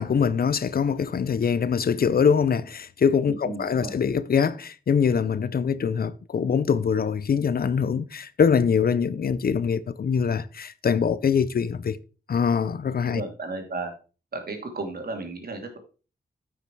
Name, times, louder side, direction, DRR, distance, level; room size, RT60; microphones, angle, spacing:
voice 1, 0.0-12.0 12.3-13.2, left 6 dB, 60° left, 0.7 m, -23 dB
voice 2, 3.4-3.9 13.1-13.9 14.3-15.8, right 3 dB, 60° right, 2.5 m, -34 dB
9.5 x 6.0 x 4.6 m
cardioid pair, 80°, 17 cm